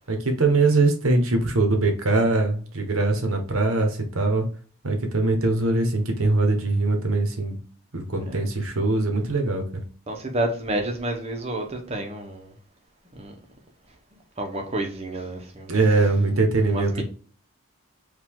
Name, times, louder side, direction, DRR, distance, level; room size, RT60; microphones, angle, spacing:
voice 1, 0.1-4.5 4.8-7.6 7.9-9.6 15.7-17.0, right 2 dB, 75° right, 1.2 m, -22 dB
voice 2, 10.1-12.5 13.1-13.3 14.1-15.8 16.7-17.0, right 1 dB, 30° right, 0.9 m, -30 dB
5.0 x 2.7 x 3.7 m
head